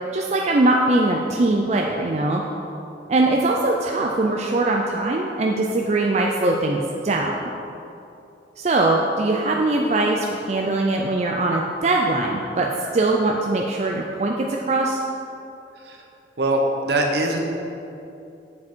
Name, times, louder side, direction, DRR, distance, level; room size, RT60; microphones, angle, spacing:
voice 1, 0.1-2.4 3.1-7.4 8.6-12.7 12.9-15.0, right 2 dB, 40° right, 0 dB, 0.4 m, -21 dB
voice 2, 15.7-16.1 16.4-17.4, right 1 dB, 65° right, 1 dB, 1.0 m, -22 dB
7.6 x 6.0 x 4.4 m, 2.7 s
head